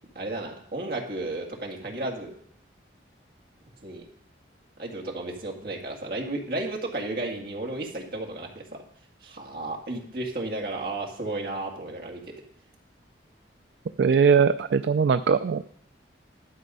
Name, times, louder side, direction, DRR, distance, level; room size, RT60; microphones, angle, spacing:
voice 1, 0.2-2.3 3.8-4.1 4.8-8.8 9.2-12.3, right 2 dB, 50° right, 1 dB, 1.9 m, -33 dB
voice 2, 14.0-15.7, right 6 dB, 65° right, 11 dB, 0.3 m, -21 dB
12.0 x 6.9 x 5.4 m, 0.65 s
head